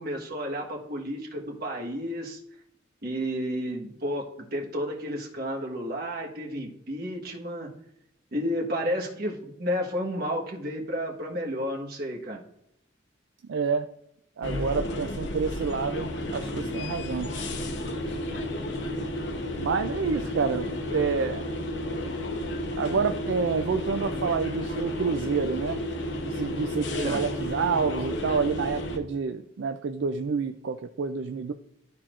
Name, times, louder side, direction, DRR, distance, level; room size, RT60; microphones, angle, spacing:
voice 1, 0.0-2.4 3.0-7.7 8.3-12.4 26.9-27.2, equal, 55° right, 0 dB, 1.3 m, -31 dB
voice 2, 13.4-13.9 14.4-17.3 19.6-21.5 22.8-25.8 26.2-31.5, right 5 dB, 70° right, 7 dB, 0.4 m, -28 dB
sound 1, 14.4-29.0, left 1 dB, 65° left, 0.8 m, -32 dB
12.0 x 4.3 x 2.5 m, 0.77 s
head